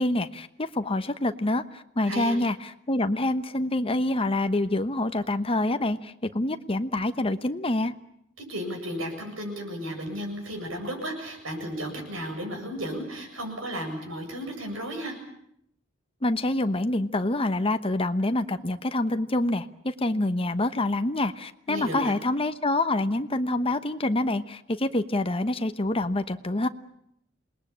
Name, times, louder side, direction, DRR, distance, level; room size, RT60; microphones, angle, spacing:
voice 1, 0.0-7.9 16.2-26.7, left 2 dB, 30° left, 9 dB, 1.1 m, -26 dB
voice 2, 2.1-2.4 8.4-15.1 21.7-22.1, equal, 85° right, 3 dB, 7.9 m, -34 dB
27.5 x 20.0 x 8.7 m, 0.75 s
head